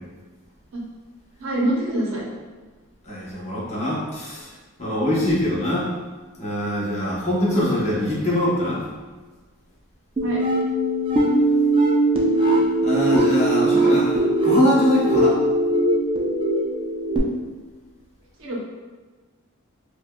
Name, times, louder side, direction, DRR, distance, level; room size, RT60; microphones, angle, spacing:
voice 1, 1.4-2.2 10.2-10.4 18.4-18.6, right 1 dB, 65° right, -3 dB, 0.8 m, -24 dB
voice 2, 3.1-4.5 4.8-5.9 6.4-8.8 12.8-15.4, left 1 dB, 30° left, -7 dB, 0.9 m, -23 dB
sound 1, 10.2-17.2, right 1 dB, 25° right, 0.4 m, -20 dB
4.8 x 2.3 x 2.2 m, 1.3 s
head